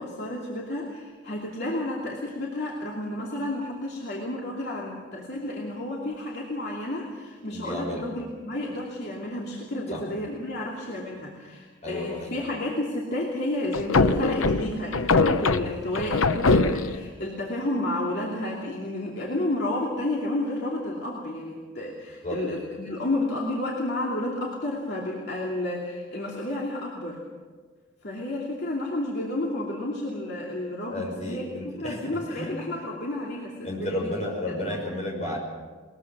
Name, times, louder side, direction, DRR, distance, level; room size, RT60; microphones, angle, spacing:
voice 1, 0.0-27.2 28.0-31.4 31.8-34.2 34.4-34.8, left 1 dB, 55° left, -3 dB, 2.7 m, -31 dB
voice 2, 7.5-8.0 9.9-10.0 11.8-12.4 22.2-22.4 30.9-32.5 33.6-35.4, left 1 dB, 35° left, -1 dB, 5.9 m, -32 dB
sound 1, 13.7-17.1, left 3 dB, 85° left, 0.8 m, -22 dB
21.0 x 21.0 x 6.1 m, 1.5 s
head